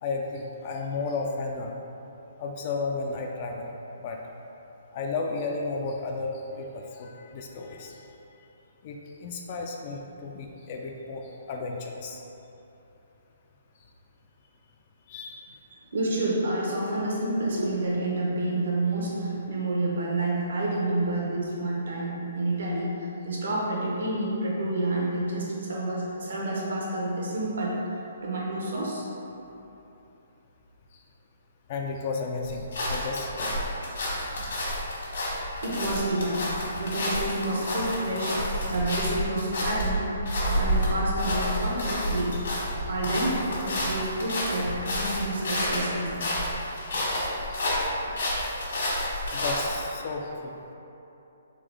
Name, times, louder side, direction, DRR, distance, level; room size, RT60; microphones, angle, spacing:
voice 1, 0.0-1.8 2.4-3.7 4.0-4.2 4.9-8.1 8.8-12.2 15.1-15.5 30.9-31.0 31.7-33.3 34.9-35.0 47.5-47.6 48.2-48.3 49.3-50.6, left 4 dB, 40° left, 1 dB, 0.3 m, -33 dB
voice 2, 15.9-27.8 28.2-29.0 35.6-40.1 40.5-42.3 42.9-46.2, right 1 dB, 70° right, -4 dB, 1.0 m, -29 dB
sound 1, 32.4-49.8, equal, 70° left, 1.4 m, -29 dB
3.7 x 3.1 x 3.4 m, 3.0 s
hypercardioid pair, 155°, 0 cm